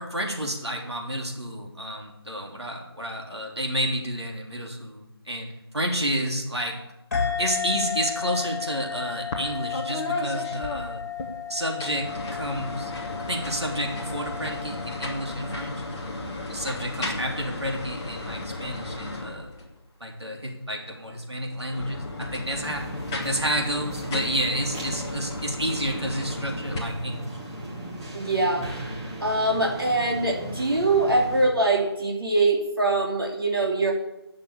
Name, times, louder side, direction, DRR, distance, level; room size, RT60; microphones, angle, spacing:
voice 1, 0.0-5.5 5.7-6.8 7.4-11.0 11.5-12.9 13.2-16.2 16.5-19.5 20.0-22.9 23.2-27.3, equal, 85° right, 0 dB, 3.4 m, -30 dB
sound 1, 7.1-16.2, left 7 dB, 40° left, 2.7 m, -34 dB
sound 2, 9.3-9.5 9.7-11.3 11.7-19.8 21.5-26.8, left 2 dB, 10° left, 0.8 m, -34 dB
sound 3, 22.6-31.5, right 1 dB, 15° right, 1.5 m, -37 dB
voice 2, 28.1-28.7 29.2-33.9, right 2 dB, 60° right, -1 dB, 3.0 m, -23 dB
11.5 x 6.8 x 8.5 m, 0.90 s
figure-of-eight pair, 165°, 14 cm